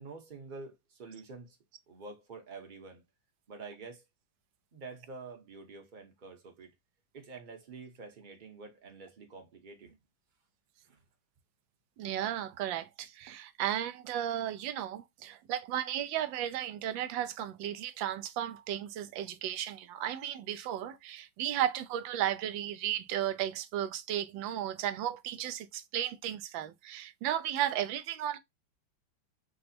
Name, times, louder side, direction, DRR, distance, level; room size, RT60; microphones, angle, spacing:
voice 1, 0.0-1.6 1.9-3.0 3.5-4.0 4.7-6.7 7.1-10.0 10.9-11.0, right 4 dB, 35° right, 0.8 m, -47 dB
voice 2, 12.0-28.4, right 11 dB, 80° right, 1.3 m, -34 dB
5.4 x 2.1 x 4.1 m
omnidirectional pair, 2.1 m